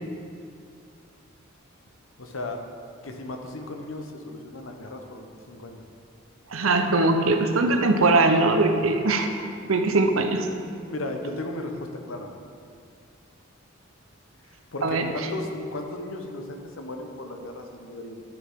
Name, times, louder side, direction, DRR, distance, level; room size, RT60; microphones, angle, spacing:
voice 1, 2.2-2.6 3.0-5.8 10.9-12.3 14.7-18.2, left 2 dB, 70° left, 4 dB, 1.0 m, -35 dB
voice 2, 6.5-10.5 14.8-15.1, right 2 dB, 75° right, 6 dB, 0.8 m, -21 dB
11.5 x 6.9 x 3.7 m, 2.3 s
head